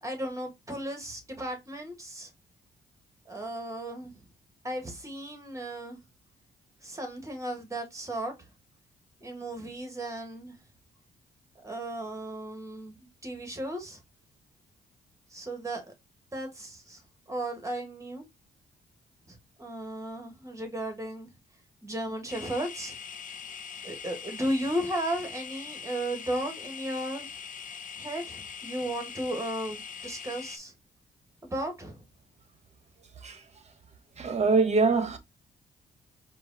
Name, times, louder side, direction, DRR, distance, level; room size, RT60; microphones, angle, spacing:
voice 1, 0.0-2.3 3.2-4.2 4.6-6.0 6.8-8.3 9.2-10.6 11.6-14.0 15.3-15.9 16.3-17.0 17.3-18.2 19.3-21.3 21.8-23.0 23.8-27.3 27.9-30.7 31.4-32.0, right 1 dB, 15° right, 1.7 m, -35 dB
sound 1, 22.3-30.6, left 6 dB, 50° left, 0.7 m, -42 dB
voice 2, 34.2-35.2, right 4 dB, 40° right, 1.0 m, -24 dB
4.8 x 2.4 x 4.0 m
cardioid pair, 80°, 18 cm